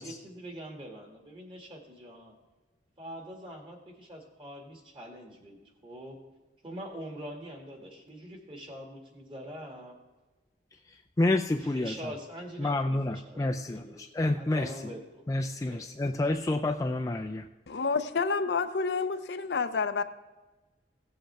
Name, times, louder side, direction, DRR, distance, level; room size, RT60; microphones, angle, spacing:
voice 1, 0.0-2.3 3.0-6.2 6.6-10.0 11.7-13.0 13.3-14.0 14.4-15.8, equal, 30° right, 1 dB, 2.1 m, -44 dB
voice 2, 10.9-12.1 12.6-14.7 15.3-17.5, left 2 dB, 20° left, 4 dB, 0.3 m, -29 dB
voice 3, 17.7-20.0, left 4 dB, 70° left, 10 dB, 0.6 m, -29 dB
16.5 x 7.7 x 3.4 m, 1.2 s
head